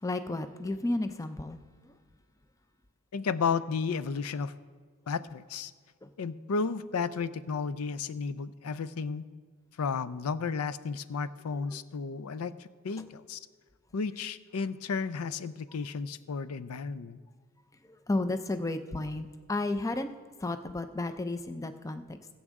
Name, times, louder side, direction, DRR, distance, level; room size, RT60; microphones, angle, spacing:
voice 1, 0.0-1.9 6.0-6.1 11.5-11.8 17.8-20.1 20.4-22.2, left 2 dB, 15° left, 9 dB, 0.4 m, -33 dB
voice 2, 3.1-4.5 5.1-5.7 6.2-9.3 9.8-13.4 13.9-17.2, left 5 dB, 80° left, 15 dB, 0.5 m, -33 dB
20.5 x 7.3 x 3.7 m, 1.5 s
head